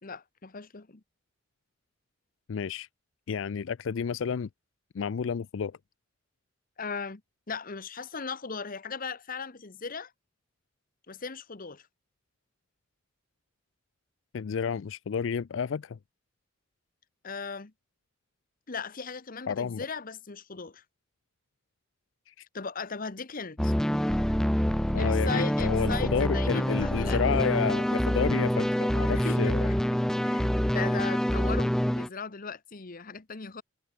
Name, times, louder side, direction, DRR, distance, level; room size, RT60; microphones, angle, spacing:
voice 1, 0.0-1.0 6.8-7.2 7.5-10.1 11.1-11.8 17.2-17.7 18.7-20.8 22.5-23.7 24.9-27.2 29.1-29.8 30.2-33.6, left 5 dB, 45° left, 1.1 m, -37 dB
voice 2, 2.5-2.9 3.3-4.5 4.9-5.8 14.3-16.0 19.5-19.9 22.3-22.5 24.9-29.7, left 6 dB, 75° left, 0.4 m, -30 dB
sound 1, 23.6-32.1, equal, 5° left, 0.5 m, -26 dB
head